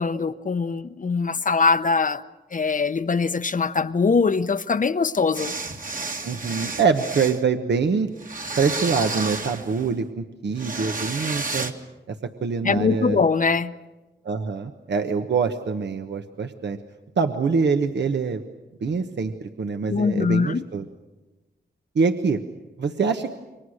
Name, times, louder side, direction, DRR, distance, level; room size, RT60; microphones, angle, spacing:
voice 1, 0.0-2.2 2.5-5.5 12.6-13.7 19.9-20.6, left 4 dB, 45° left, 0.8 m, -22 dB
sound 1, 5.3-7.4 8.2-9.9 10.6-11.7, right 3 dB, 45° right, 1.9 m, -31 dB
voice 2, 6.2-8.1 8.6-11.7 12.1-12.2 12.4-13.2 14.2-16.8 17.2-18.4 18.8-20.9 21.9-22.4 22.8-23.4, right 5 dB, 70° right, 1.2 m, -24 dB
29.0 x 24.0 x 6.5 m
cardioid pair, 80°, 19 cm